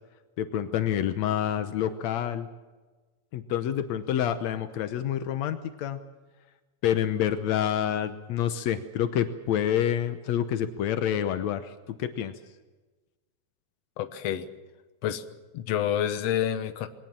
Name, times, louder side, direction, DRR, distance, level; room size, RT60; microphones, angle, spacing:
voice 1, 0.4-2.5 3.3-6.0 6.8-11.7 12.0-12.3, left 10 dB, 85° left, 10 dB, 1.5 m, -27 dB
voice 2, 14.0-14.5 15.0-15.2 15.5-16.9, left 10 dB, 70° left, 10 dB, 1.6 m, -28 dB
22.0 x 18.0 x 7.5 m, 1.2 s
omnidirectional pair, 4.5 m